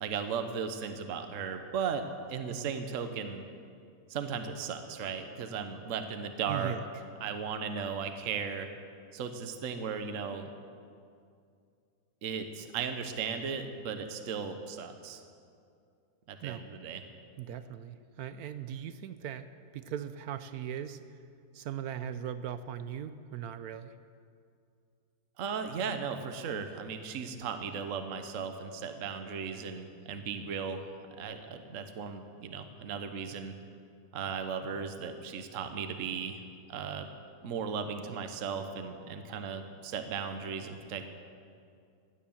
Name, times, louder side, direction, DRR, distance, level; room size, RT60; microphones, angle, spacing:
voice 1, 0.0-3.4 4.1-6.7 7.2-8.7 9.1-10.5 12.2-15.2 16.3-17.0 25.4-30.8 31.2-33.5 34.1-36.4 36.7-37.1 37.4-41.0, right 6 dB, 55° right, 7 dB, 1.2 m, -36 dB
voice 2, 6.5-6.9 16.4-16.7 17.4-19.5 19.7-21.0 21.5-23.9, right 9 dB, 70° right, 11 dB, 1.0 m, -39 dB
16.5 x 10.0 x 7.1 m, 2.3 s
omnidirectional pair, 1.8 m